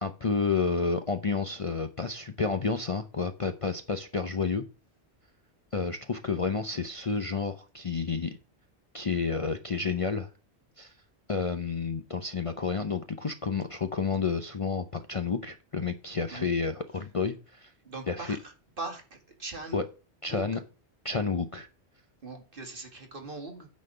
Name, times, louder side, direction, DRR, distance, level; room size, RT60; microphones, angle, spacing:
voice 1, 0.0-4.6 5.7-8.4 8.9-10.3 10.8-10.9 11.3-17.7 18.1-18.4 19.7-19.8 20.2-20.6 21.0-21.7, left 5 dB, 40° left, 0.6 m, -30 dB
voice 2, 17.9-18.4 18.8-19.0 19.4-19.8 20.3-20.5 22.2-23.7, right 3 dB, 55° right, 2.1 m, -40 dB
9.6 x 4.3 x 6.6 m
omnidirectional pair, 1.1 m